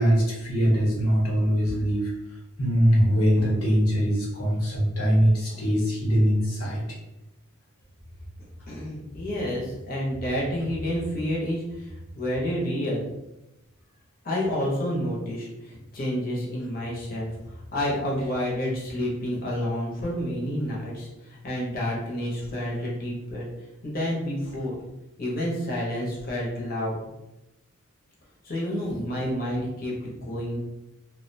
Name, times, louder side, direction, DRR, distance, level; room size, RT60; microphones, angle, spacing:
voice 1, 0.0-2.1 2.6-6.8, equal, 85° left, -4 dB, 0.9 m, -22 dB
voice 2, 8.7-13.1 14.2-23.5 23.8-24.7 25.2-27.0 28.4-30.6, equal, 40° left, -4 dB, 0.7 m, -29 dB
2.4 x 2.1 x 2.6 m, 0.94 s
head